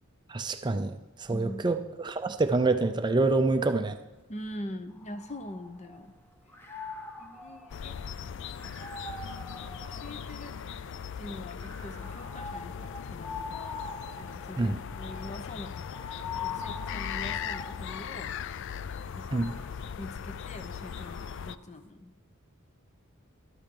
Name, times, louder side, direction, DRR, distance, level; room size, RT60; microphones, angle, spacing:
voice 1, 0.3-4.0 14.6-14.8 19.3-19.6, right 3 dB, 20° right, 8 dB, 0.4 m, -27 dB
voice 2, 1.3-1.7 4.3-6.1 7.2-8.0 8.3-8.7 9.8-10.6 11.2-13.9 14.2-15.8 16.4-18.3 19.1-19.5 20.0-22.1, left 1 dB, 35° left, 9 dB, 0.7 m, -43 dB
sound 1, 4.9-6.1 6.5-10.9 11.6-18.3 19.0-21.6, left 4 dB, 10° left, 1.0 m, -43 dB
sound 2, 7.7-21.6, left 7 dB, 60° left, 0.3 m, -39 dB
13.5 x 11.5 x 3.8 m, 1.1 s
head